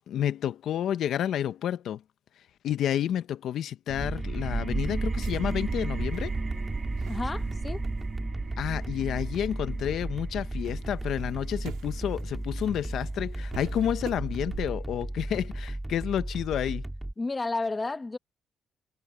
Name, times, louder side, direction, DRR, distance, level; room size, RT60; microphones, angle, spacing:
voice 1, 0.1-2.0 2.6-6.4 8.6-16.9, left 10 dB, 70° left, 0.9 m, -30 dB
sound 1, 3.9-15.3, right 4 dB, 35° right, 2.5 m, -36 dB
sound 2, 4.0-17.1, right 1 dB, 10° right, 2.2 m, -35 dB
sound 3, 4.9-10.0 10.3-14.7, right 13 dB, 90° right, 3.3 m, -46 dB
voice 2, 7.1-7.8 17.2-18.2, left 3 dB, 25° left, 1.5 m, -31 dB
cardioid pair, 90°, 0 cm